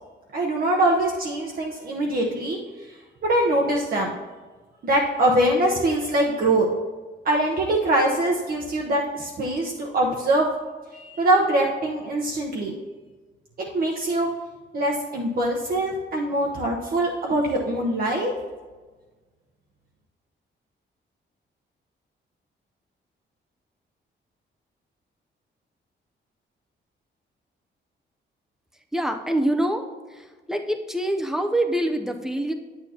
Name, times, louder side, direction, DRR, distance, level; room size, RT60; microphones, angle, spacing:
voice 1, 0.3-2.6 3.2-4.1 4.8-6.7 7.2-10.5 10.9-12.8 13.6-14.3 14.7-18.3, right 1 dB, 50° right, -2 dB, 0.9 m, -23 dB
voice 2, 28.9-29.9 30.1-32.5, right 1 dB, ahead, 5 dB, 0.6 m, -25 dB
9.6 x 8.8 x 2.9 m, 1.3 s
wide cardioid pair, 155°, 20 cm